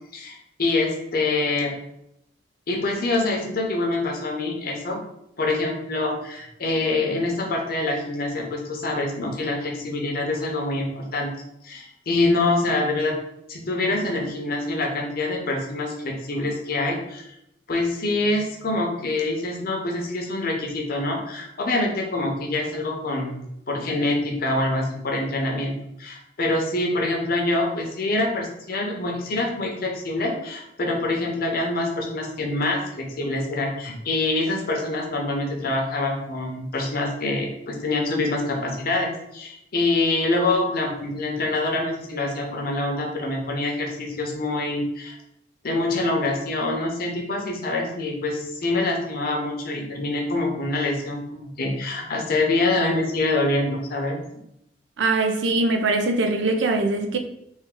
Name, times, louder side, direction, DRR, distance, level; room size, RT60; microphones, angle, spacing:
voice 1, 0.1-1.7 2.7-5.0 5.4-11.3 11.6-13.2 13.5-17.3 17.7-45.2 45.6-54.2, left 2 dB, 55° left, 0.8 m, -25 dB
voice 2, 55.0-57.2, right 2 dB, 80° right, 0.5 m, -22 dB
3.5 x 2.5 x 3.7 m
head